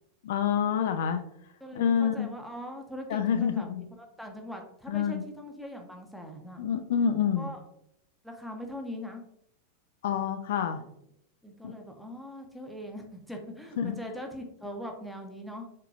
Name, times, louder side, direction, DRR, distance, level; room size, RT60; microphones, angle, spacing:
voice 1, 0.2-1.2 1.7-2.3 3.1-3.8 4.9-5.2 6.6-7.5 10.0-10.8 11.6-11.7 13.8-14.0, left 8 dB, 55° left, 8 dB, 0.3 m, -27 dB
voice 2, 1.6-6.6 7.4-7.6 8.2-9.2 11.4-15.7, equal, ahead, 2 dB, 0.7 m, -41 dB
4.5 x 3.7 x 2.4 m, 0.77 s
figure-of-eight pair, 90°, 0 cm